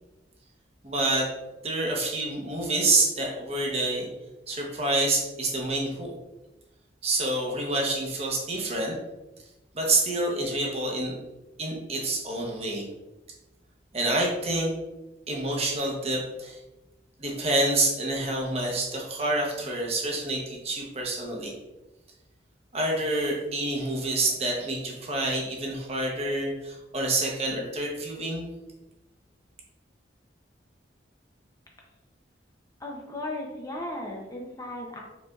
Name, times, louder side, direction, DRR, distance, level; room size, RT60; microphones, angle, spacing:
voice 1, 0.8-1.3 1.6-4.1 4.5-6.1 7.0-9.0 9.7-11.1 11.6-12.9 13.9-14.7 15.3-16.6 17.2-21.5 22.7-28.5, right 2 dB, 35° right, -1 dB, 0.8 m, -27 dB
voice 2, 32.8-35.0, left 1 dB, 20° left, -1 dB, 0.5 m, -36 dB
5.0 x 3.3 x 2.3 m, 1.0 s
head